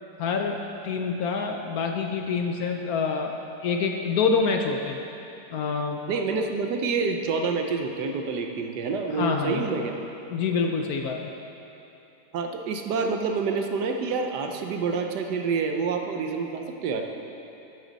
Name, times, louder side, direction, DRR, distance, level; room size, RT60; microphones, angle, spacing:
voice 1, 0.2-5.0 5.5-6.0 9.1-9.7 10.3-11.3, left 5 dB, 65° left, 3 dB, 1.0 m, -27 dB
voice 2, 6.1-9.9 12.3-17.0, right 4 dB, 75° right, 4 dB, 1.4 m, -27 dB
12.0 x 9.4 x 4.0 m, 3.0 s
omnidirectional pair, 1.8 m